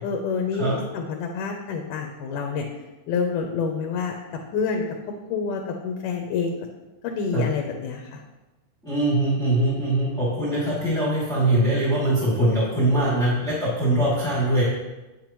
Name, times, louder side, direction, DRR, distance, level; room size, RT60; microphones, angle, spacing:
voice 1, 0.0-2.7 3.1-4.1 4.5-4.8 5.3-6.5 7.0-8.2, left 5 dB, 80° left, 3 dB, 2.3 m, -27 dB
voice 2, 8.8-14.6, right 1 dB, ahead, -10 dB, 1.9 m, -22 dB
8.9 x 8.6 x 3.1 m, 1.1 s
omnidirectional pair, 3.9 m